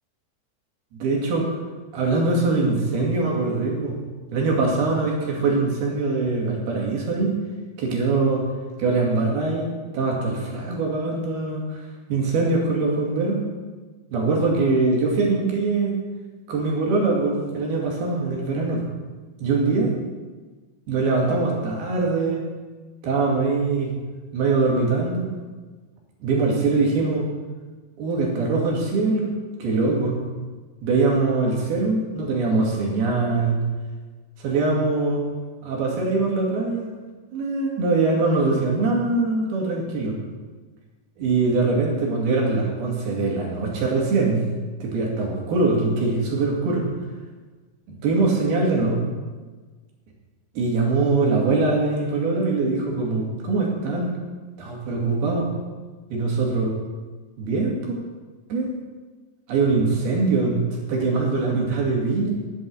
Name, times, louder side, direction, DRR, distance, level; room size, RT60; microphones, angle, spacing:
voice 1, 0.9-1.5 1.9-4.0 4.3-7.3 7.8-8.5 8.8-9.7 9.9-11.8 12.1-13.4 14.1-16.0 16.5-18.8 19.4-19.9 20.9-22.4 23.0-23.9 24.3-25.3 26.2-27.3 28.0-29.3 29.6-30.2 30.8-33.6 34.4-35.2 35.6-36.9 37.3-40.2 41.2-44.4 44.8-46.9 48.0-49.0 50.6-54.1 54.6-55.5 56.1-56.8 57.4-58.0 58.5-58.7 59.5-60.6 60.9-62.3, right 3 dB, 70° right, -1 dB, 4.2 m, -22 dB
11.5 x 8.0 x 7.7 m, 1.4 s
omnidirectional pair, 4.7 m